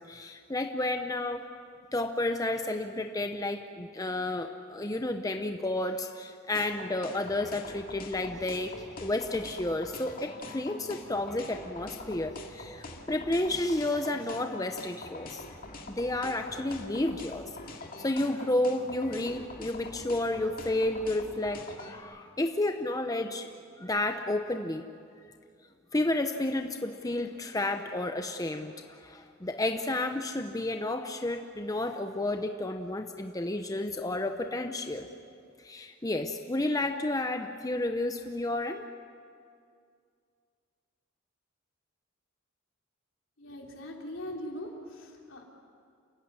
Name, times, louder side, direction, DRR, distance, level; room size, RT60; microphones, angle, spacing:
voice 1, 0.0-1.4 1.9-15.4 15.9-17.5 18.0-23.5 23.8-24.9 25.9-35.1 35.6-38.8, left 2 dB, 15° left, 6 dB, 0.8 m, -31 dB
sound 1, 6.5-22.0, left 2 dB, 45° left, 2.3 m, -44 dB
voice 2, 43.4-45.4, left 1 dB, 70° left, 0 dB, 3.7 m, -41 dB
28.5 x 16.0 x 9.7 m, 2.3 s
head